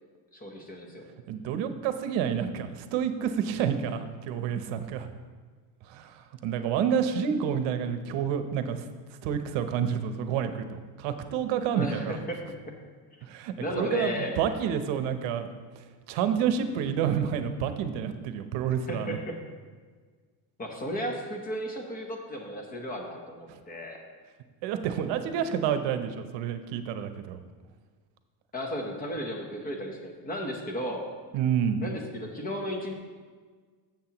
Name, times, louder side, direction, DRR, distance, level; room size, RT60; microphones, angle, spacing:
voice 1, 0.3-1.0 11.7-12.7 13.6-14.4 18.9-19.4 20.6-24.0 28.5-31.0 31.8-32.9, equal, 20° left, 2 dB, 0.9 m, -34 dB
voice 2, 1.3-5.1 5.9-8.8 9.2-12.2 13.2-15.5 16.1-19.2 23.5-23.6 24.6-27.4 31.3-31.8, right 8 dB, 70° right, 9 dB, 0.8 m, -29 dB
13.0 x 7.3 x 3.0 m, 1.5 s
cardioid pair, 180°, 46 cm